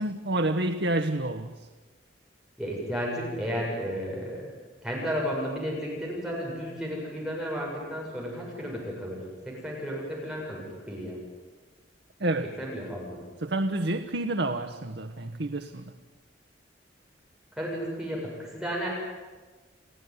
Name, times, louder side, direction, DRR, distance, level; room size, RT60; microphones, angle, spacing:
voice 1, 0.0-1.5 12.2-12.5 13.4-15.8, right 2 dB, 70° right, 6 dB, 1.2 m, -28 dB
voice 2, 2.6-4.5 4.8-11.2 12.6-13.2 17.5-18.9, equal, 5° right, -4 dB, 7.4 m, -33 dB
29.5 x 16.5 x 9.7 m, 1.3 s
head